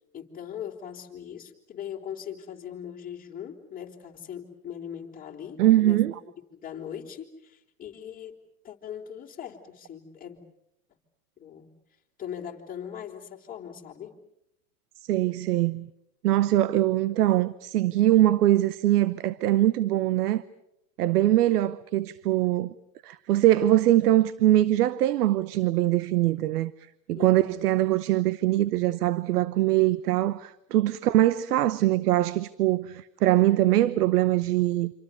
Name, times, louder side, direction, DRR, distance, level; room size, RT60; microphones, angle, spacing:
voice 1, 0.1-6.0 6.5-8.4 8.6-10.4 11.4-11.7 12.2-14.2 21.5-21.6 27.1-27.4 31.1-31.2, left 9 dB, 20° left, 3.8 m, -40 dB
voice 2, 5.6-6.1 15.1-15.9 16.2-20.4 21.0-22.7 23.0-26.7 27.1-34.9, right 14 dB, 80° right, 0.9 m, -22 dB
27.0 x 26.5 x 6.9 m
supercardioid pair, 130°, 45 cm